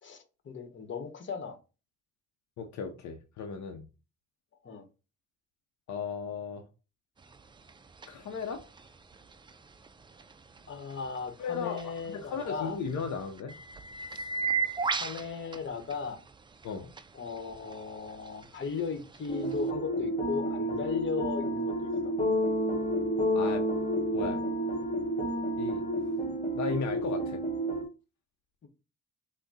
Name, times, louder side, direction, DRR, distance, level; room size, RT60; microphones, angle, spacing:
voice 1, 0.0-1.6 4.6-4.9 10.7-12.8 14.9-16.2 17.1-21.7 22.0-22.1 28.6-28.7, left 6 dB, 40° left, 1.0 m, -37 dB
voice 2, 2.6-3.8 5.9-6.6 8.1-8.6 11.4-13.6 14.1-14.2 16.6-16.9 23.3-23.7 24.1-24.5 25.6-25.9 26.5-27.4, left 5 dB, 65° left, 0.7 m, -36 dB
sound 1, 7.2-19.7, right 5 dB, 15° right, 0.4 m, -39 dB
sound 2, 19.3-27.8, right 1 dB, 25° left, 1.3 m, -30 dB
5.8 x 2.2 x 4.0 m
cardioid pair, 90°, 30 cm